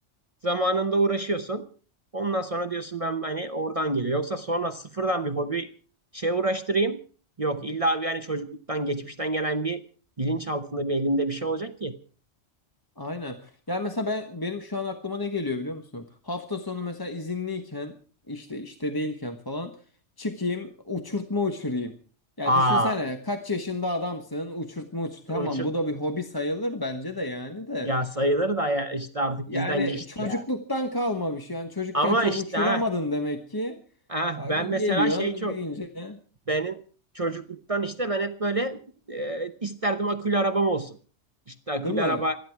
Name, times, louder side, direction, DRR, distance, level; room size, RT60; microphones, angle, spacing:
voice 1, 0.4-1.6 2.1-5.7 6.1-7.0 7.4-9.8 10.2-11.9 22.4-23.0 25.3-25.7 27.8-30.4 31.9-32.8 34.1-35.6 36.5-36.8 37.1-38.8 39.1-41.0 41.5-42.4, right 2 dB, 30° right, 7 dB, 0.9 m, -27 dB
voice 2, 13.0-17.9 18.3-19.8 20.2-21.9 22.4-27.9 29.5-33.8 34.4-36.2 41.8-42.2, left 2 dB, 20° left, 5 dB, 1.2 m, -30 dB
27.0 x 10.5 x 4.7 m, 0.41 s
omnidirectional pair, 1.2 m